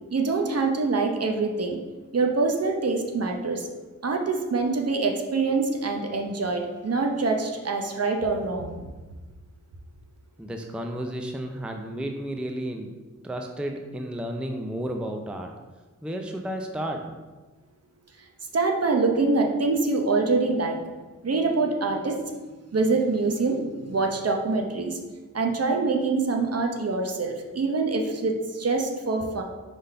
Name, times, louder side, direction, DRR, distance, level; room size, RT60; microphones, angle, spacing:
voice 1, 0.1-1.8 2.1-3.7 4.0-8.8 18.5-20.8 21.2-22.3 22.7-25.0 25.3-29.4, right 3 dB, 50° right, 3 dB, 0.9 m, -25 dB
voice 2, 10.4-12.9 13.2-15.5 16.0-17.2, right 1 dB, 5° right, 3 dB, 0.5 m, -32 dB
5.0 x 4.1 x 5.5 m, 1.3 s
wide cardioid pair, 105°, 32 cm